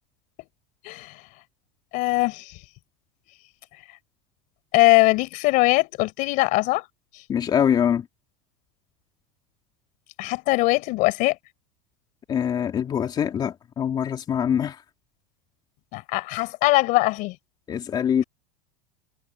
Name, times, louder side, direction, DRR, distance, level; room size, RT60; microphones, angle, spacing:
voice 1, 1.9-2.5 4.7-6.8 10.2-11.4 15.9-17.4, left 21 dB, 50° left, 4.3 m, -21 dB
voice 2, 7.3-8.0 12.3-14.8 17.7-18.2, left 8 dB, 25° left, 3.0 m, -24 dB
supercardioid pair, 155°, 18 cm